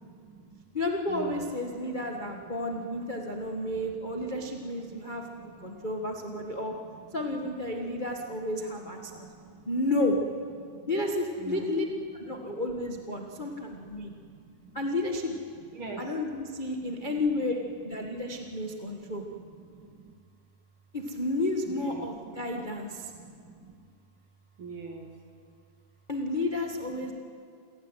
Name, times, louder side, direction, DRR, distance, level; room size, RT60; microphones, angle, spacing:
voice 1, 0.0-0.6 1.1-2.3 2.8-3.2 3.6-3.9 4.7-6.1 6.5-6.9 7.9-8.0 8.3-8.4 8.8-9.7 10.6-10.9 11.4-11.6 12.3-12.6 13.1-14.8 15.7-16.2 16.8-16.9 18.0-18.2 18.7-20.1 21.7-23.8 24.6-25.2 27.0-27.1, right 4 dB, 40° right, 3 dB, 2.8 m, -46 dB
voice 2, 0.7-6.7 7.1-9.3 9.7-10.2 10.9-11.8 12.1-14.1 14.7-15.4 16.0-17.6 17.8-19.2 20.9-23.1 26.1-27.1, left 2 dB, 30° left, 2 dB, 0.9 m, -31 dB
28.5 x 16.5 x 9.2 m, 2.2 s
omnidirectional pair, 3.8 m